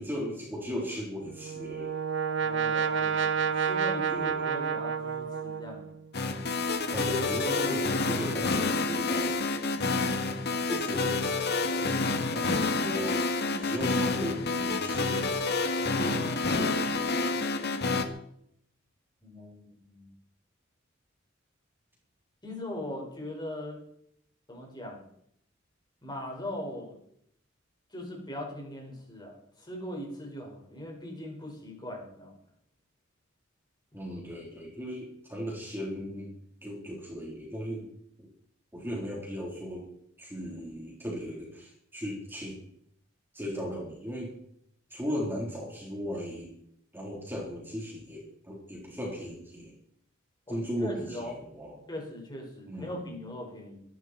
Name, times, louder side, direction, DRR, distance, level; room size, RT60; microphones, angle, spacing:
voice 1, 0.0-1.9 4.1-4.5 6.9-9.4 9.7-9.9 10.7-13.2 13.5-15.3 15.9-17.4 33.9-36.3 36.6-37.9 38.7-39.9 40.2-42.6 43.3-44.3 44.9-46.5 46.9-49.7 50.5-51.8 52.7-53.1, equal, 10° right, -3 dB, 3.8 m, -37 dB
Brass instrument, 1.2-6.0, right 6 dB, 65° right, 1.1 m, -30 dB
voice 2, 2.4-5.9 19.2-20.1 22.4-23.8 24.5-25.1 26.0-26.9 27.9-32.3 50.5-51.3 51.9-53.8, left 1 dB, 20° left, 0 dB, 5.3 m, -40 dB
sound 1, 6.1-18.0, left 3 dB, 55° left, 1.7 m, -28 dB
23.5 x 11.5 x 4.5 m, 0.70 s
head